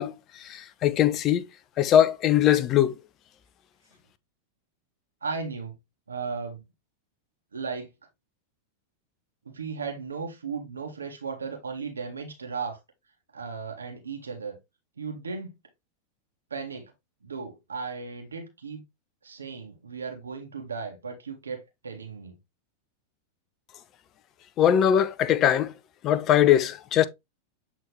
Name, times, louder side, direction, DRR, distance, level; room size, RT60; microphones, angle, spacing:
voice 1, 0.0-1.5 1.8-3.0 24.6-25.7 26.0-27.1, left 10 dB, 35° left, 0.7 m, -21 dB
voice 2, 5.2-5.8 6.1-6.7 7.5-7.9 9.4-12.8 13.3-14.6 15.0-15.5 16.5-16.9 17.2-18.8 19.2-22.4, right 5 dB, 75° right, 1.6 m, -36 dB
8.3 x 3.7 x 3.2 m
figure-of-eight pair, 90°, 0 cm